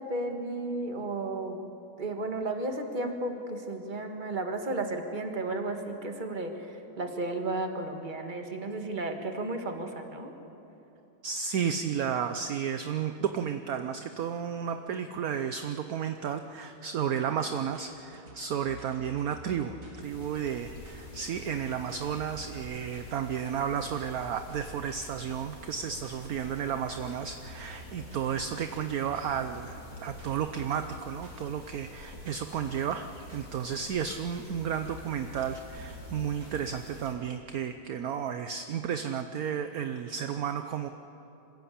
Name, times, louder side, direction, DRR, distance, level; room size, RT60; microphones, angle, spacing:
voice 1, 0.0-1.7 2.0-10.3, right 2 dB, 30° right, 5 dB, 1.7 m, -33 dB
voice 2, 11.2-40.9, right 8 dB, 65° right, 8 dB, 1.1 m, -33 dB
sound 1, 17.6-37.3, right 1 dB, 50° right, 3.3 m, -49 dB
sound 2, 20.0-37.2, left 2 dB, 85° left, 4.3 m, -49 dB
26.0 x 16.0 x 8.4 m, 3.0 s
omnidirectional pair, 1.9 m